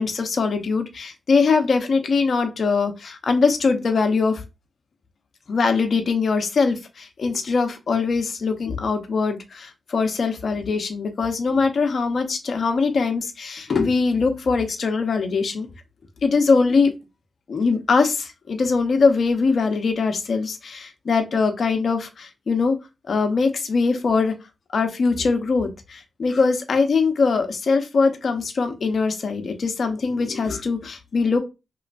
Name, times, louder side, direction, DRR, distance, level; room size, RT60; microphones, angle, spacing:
voice 1, 0.0-4.4 5.5-15.7 16.2-16.9 17.5-22.7 23.1-24.3 24.7-31.4, left 4 dB, 65° left, 6 dB, 0.8 m, -22 dB
4.8 x 3.1 x 2.6 m, 0.26 s
cardioid pair, 50°, 0 cm